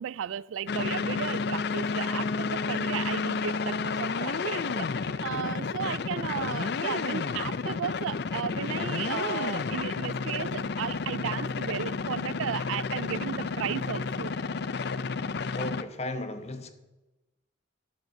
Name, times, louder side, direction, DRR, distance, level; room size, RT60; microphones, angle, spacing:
voice 1, 0.0-4.9 5.2-14.4, right 8 dB, 85° right, 0.3 m, -34 dB
sound 1, 0.7-15.8, left 4 dB, 55° left, 0.4 m, -31 dB
voice 2, 15.5-16.7, left 1 dB, 35° left, 0.9 m, -35 dB
9.7 x 8.5 x 6.7 m
head